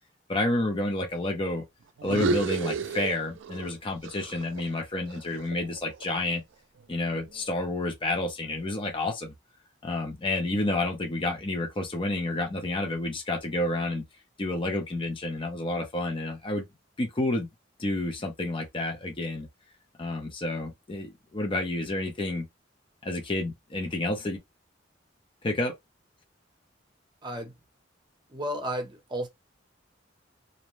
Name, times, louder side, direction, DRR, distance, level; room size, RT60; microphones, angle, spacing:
voice 1, 0.3-1.6 2.0-6.4 6.9-9.3 9.8-14.0 14.4-16.6 17.0-17.5 17.8-19.5 20.0-22.4 23.0-24.4 25.4-25.7, left 2 dB, 30° left, 0.6 m, -30 dB
sound 1, 2.0-3.7 4.0-6.3, right 4 dB, 75° right, 0.4 m, -32 dB
voice 2, 27.2-27.6 28.3-29.3, equal, 25° right, 0.8 m, -33 dB
2.6 x 2.1 x 3.0 m
head